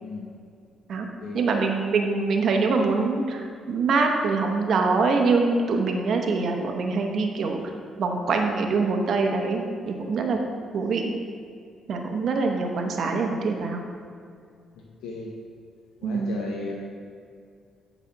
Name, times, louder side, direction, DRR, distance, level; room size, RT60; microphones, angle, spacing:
voice 1, 1.3-7.6 8.0-10.4 10.7-11.1 11.9-13.8 16.0-16.3, right 4 dB, 60° right, 3 dB, 0.9 m, -24 dB
voice 2, 14.7-15.3 16.0-16.7, left 3 dB, 80° left, -2 dB, 0.9 m, -35 dB
8.3 x 4.1 x 5.9 m, 2.3 s
cardioid pair, 90°, 0 cm